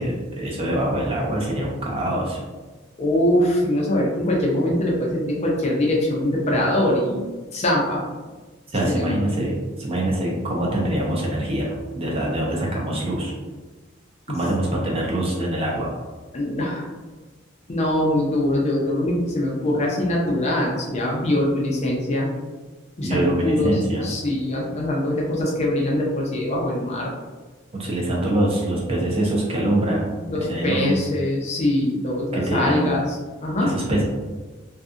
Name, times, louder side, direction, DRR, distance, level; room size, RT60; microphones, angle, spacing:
voice 1, 0.0-2.4 8.7-13.3 14.3-15.9 23.0-24.0 27.7-31.0 32.3-33.0 33.6-34.0, right 1 dB, 30° right, -3 dB, 0.5 m, -24 dB
voice 2, 3.0-7.3 7.5-8.1 8.8-9.2 14.3-14.4 16.3-16.9 17.7-22.3 23.0-27.1 30.3-33.7, left 1 dB, 35° left, -2 dB, 0.5 m, -23 dB
2.5 x 2.5 x 2.4 m, 1.3 s
head